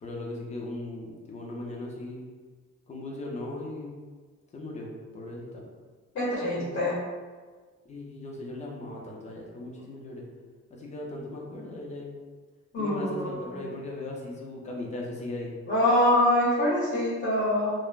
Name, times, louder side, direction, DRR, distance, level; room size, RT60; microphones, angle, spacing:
voice 1, 0.0-2.2 2.9-4.0 4.5-5.6 6.5-6.7 7.9-10.3 10.7-12.1 12.8-15.5, left 2 dB, 25° left, -2 dB, 0.4 m, -38 dB
voice 2, 6.1-6.9 12.7-13.6 15.7-17.7, left 1 dB, 45° left, -9 dB, 0.8 m, -25 dB
3.2 x 2.0 x 2.3 m, 1.4 s
wide cardioid pair, 175°, 29 cm